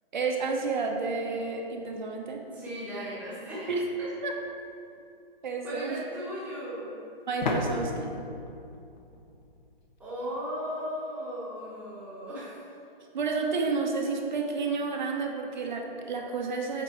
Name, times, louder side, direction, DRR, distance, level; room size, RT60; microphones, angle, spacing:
voice 1, 0.1-2.4 3.7-3.9 4.2-4.3 5.4-6.0 7.3-8.1 13.1-16.8, right 4 dB, 50° right, 1 dB, 0.9 m, -30 dB
voice 2, 2.4-3.7 4.0-4.1 5.6-6.9 10.0-12.7, equal, 5° right, -10 dB, 1.1 m, -36 dB
sound 1, 4.4-4.5 7.4-10.0, left 2 dB, 50° left, 0.8 m, -34 dB
8.3 x 4.1 x 4.5 m, 2.5 s
hypercardioid pair, 165°, 30 cm